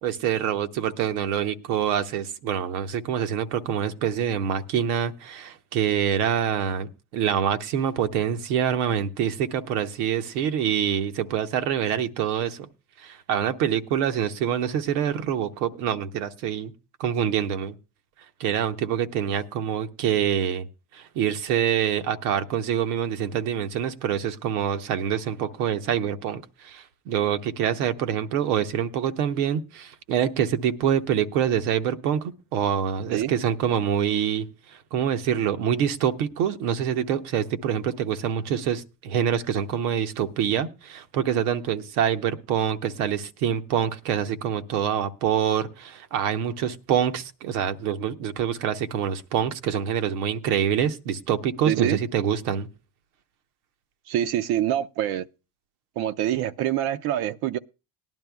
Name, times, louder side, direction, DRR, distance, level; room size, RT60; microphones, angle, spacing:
voice 1, 0.0-12.7 13.0-16.7 17.0-17.8 18.4-20.7 20.9-52.7, right 9 dB, 80° right, 0.9 m, -26 dB
voice 2, 51.7-52.0 54.1-55.3 56.0-57.6, right 11 dB, 60° right, 0.6 m, -25 dB
18.5 x 11.0 x 2.3 m
hypercardioid pair, 70°, 44 cm